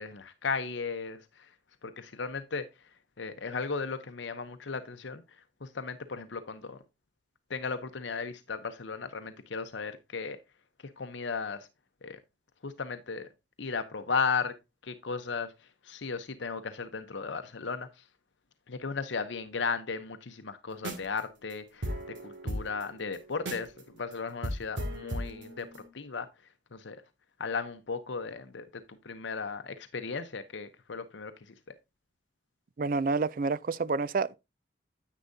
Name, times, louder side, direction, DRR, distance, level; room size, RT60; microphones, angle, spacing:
voice 1, 0.0-1.5 1.8-2.9 3.2-6.8 7.5-10.4 11.0-11.7 12.0-12.2 12.6-13.3 13.6-14.5 14.8-18.0 18.7-21.9 22.2-26.3 26.7-27.0 27.4-31.5, left 5 dB, 75° left, 0.8 m, -36 dB
sound 1, 20.7-21.2 21.5-21.6 21.8-23.8 24.1-24.2 24.4-25.9, right 1 dB, 75° right, 2.3 m, -36 dB
voice 2, 32.8-34.4, right 4 dB, 45° right, 0.4 m, -28 dB
10.0 x 8.4 x 2.7 m
head